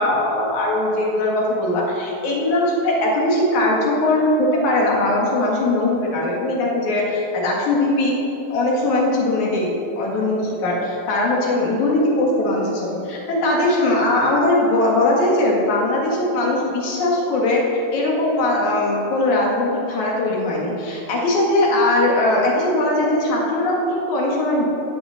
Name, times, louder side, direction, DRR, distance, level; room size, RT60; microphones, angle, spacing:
voice 1, 0.0-8.2 8.5-17.6 17.9-24.6, left 2 dB, 55° left, -2 dB, 2.2 m, -20 dB
17.0 x 7.1 x 6.4 m, 2.9 s
omnidirectional pair, 5.7 m